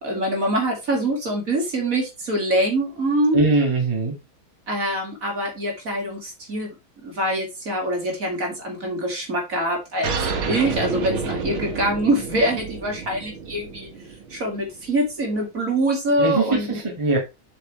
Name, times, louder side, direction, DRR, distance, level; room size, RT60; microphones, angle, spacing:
voice 1, 0.0-3.4 4.7-6.7 7.0-10.1 10.5-13.9 14.3-16.8, right 1 dB, 40° right, 0 dB, 2.8 m, -24 dB
voice 2, 3.3-4.2 16.2-17.2, right 2 dB, 15° right, -1 dB, 1.9 m, -21 dB
sound 1, 10.0-15.1, right 5 dB, 80° right, 2.1 m, -29 dB
7.6 x 5.9 x 3.3 m, 0.25 s
omnidirectional pair, 2.3 m